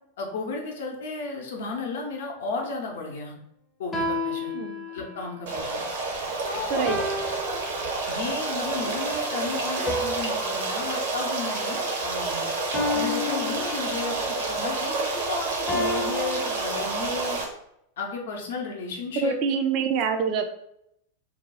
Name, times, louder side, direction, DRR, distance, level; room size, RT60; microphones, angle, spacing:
voice 1, 0.2-3.3 3.8-4.5 4.9-5.8 6.4-7.1 8.1-12.5 12.9-17.4 18.0-19.3, left 3 dB, 55° left, 1 dB, 0.7 m, -33 dB
sound 1, 3.9-5.3 6.9-8.3 9.9-12.2 12.7-14.3 15.7-17.2, left 2 dB, 20° left, 0.6 m, -32 dB
voice 2, 4.5-4.9 6.7-7.0 19.2-20.5, right 6 dB, 40° right, 6 dB, 0.4 m, -25 dB
Stream, 5.5-17.4, right 3 dB, 60° right, 0.7 m, -29 dB
2.7 x 2.2 x 4.0 m, 0.76 s
figure-of-eight pair, 90°, 0 cm